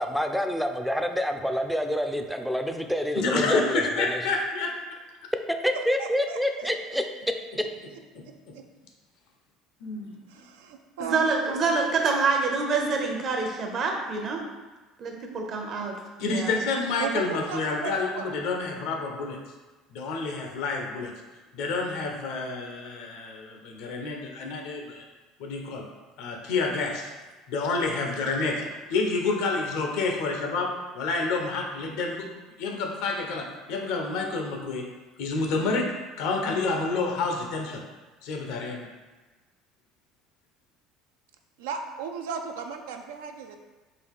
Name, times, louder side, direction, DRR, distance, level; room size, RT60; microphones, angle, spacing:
voice 1, 0.0-4.2 5.6-7.0, equal, ahead, 5 dB, 0.3 m, -27 dB
voice 2, 3.1-4.7 8.1-8.2 9.8-10.1 16.2-19.4 19.9-21.1 21.5-25.0 25.4-25.8 26.2-27.1 27.5-28.5 28.9-32.3 32.6-34.8 35.2-37.8 38.2-38.9, left 3 dB, 75° left, 2 dB, 0.6 m, -28 dB
voice 3, 6.0-6.7 7.3-8.0 8.5-8.6 10.3-11.8 17.0-18.4 41.6-43.6, right 6 dB, 90° right, 5 dB, 0.3 m, -36 dB
voice 4, 11.0-14.4 15.0-16.6, right 4 dB, 50° right, 2 dB, 0.7 m, -26 dB
3.8 x 2.3 x 3.5 m, 1.2 s
supercardioid pair, 90°, 0 cm